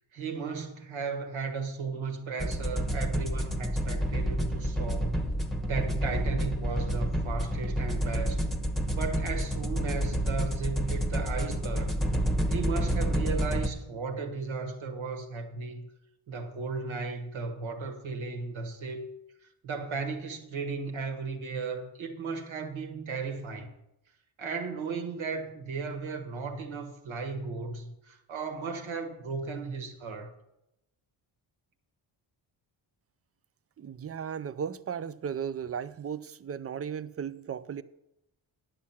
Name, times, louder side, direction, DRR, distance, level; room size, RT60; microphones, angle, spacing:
voice 1, 0.1-5.1 5.7-8.5 8.9-11.9 12.5-15.9 16.3-19.1 19.6-23.7 24.4-30.3, right 4 dB, 70° right, 1.6 m, -35 dB
sound 1, 2.4-13.7, equal, ahead, 1.0 m, -29 dB
voice 2, 33.8-37.8, right 7 dB, 30° right, 0.4 m, -36 dB
10.0 x 7.5 x 5.8 m
cardioid pair, 95°, 49 cm